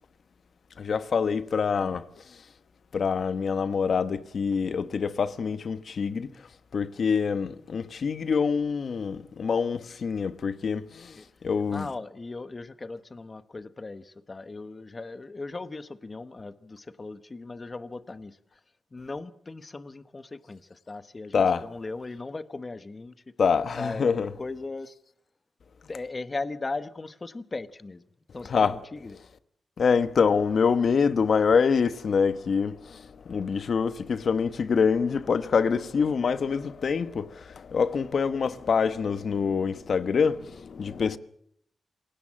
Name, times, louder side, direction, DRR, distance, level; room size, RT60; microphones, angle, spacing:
voice 1, 0.8-2.1 2.9-6.3 6.7-11.9 21.3-21.6 23.4-24.3 28.4-28.8 29.8-41.2, left 6 dB, 55° left, 1.1 m, -25 dB
voice 2, 11.7-18.4 18.9-23.2 23.8-25.0 25.9-28.0 28.3-29.1, left 3 dB, 25° left, 1.1 m, -38 dB
27.5 x 17.5 x 7.5 m
wide cardioid pair, 135°, 0 cm